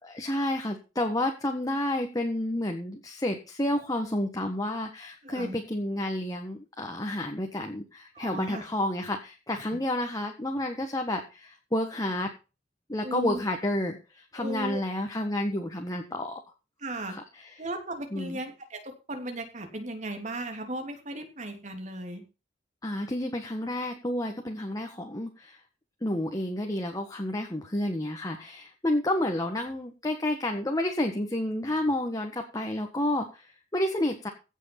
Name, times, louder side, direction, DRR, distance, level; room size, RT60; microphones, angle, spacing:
voice 1, 0.0-12.3 12.9-16.4 17.1-17.5 18.1-18.4 22.8-25.6 26.0-34.3, left 1 dB, 20° left, 3 dB, 1.5 m, -30 dB
voice 2, 5.2-5.6 8.1-8.6 9.7-9.8 13.0-13.4 14.4-14.8 16.8-17.2 17.6-22.2, right 1 dB, 40° right, 5 dB, 3.1 m, -36 dB
16.5 x 6.4 x 5.9 m, 0.31 s
head